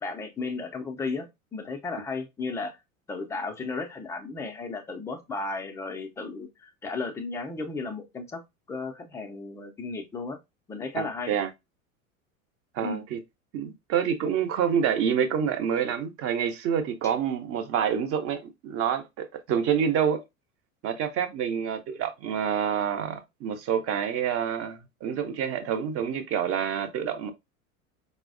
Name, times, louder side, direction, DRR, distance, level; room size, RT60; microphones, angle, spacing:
voice 1, 0.0-2.8 3.1-8.4 8.7-10.4 10.7-11.3 12.8-13.0, left 4 dB, 10° left, 0.3 m, -34 dB
voice 2, 10.9-11.5 12.7-13.2 13.5-20.2 20.8-27.3, right 8 dB, 35° right, 0.7 m, -27 dB
4.5 x 2.1 x 2.4 m
figure-of-eight pair, 80°, 42 cm